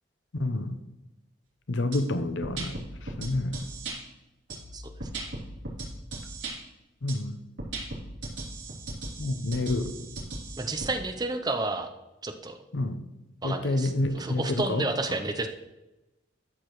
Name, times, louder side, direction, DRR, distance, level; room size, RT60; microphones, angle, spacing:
voice 1, 0.4-0.8 1.7-3.7 7.0-7.4 9.2-9.9 12.7-13.0 13.4-14.9, left 2 dB, 80° left, 9 dB, 0.7 m, -29 dB
sound 1, 1.9-2.0 2.4-4.0 4.5-6.5 7.1-7.2 7.6-10.9, right 2 dB, 80° right, 3.4 m, -37 dB
voice 2, 4.7-5.1 10.6-11.9 12.2-12.6 13.4-15.5, right 2 dB, 20° right, 6 dB, 0.6 m, -31 dB
13.0 x 6.7 x 3.1 m, 0.98 s
head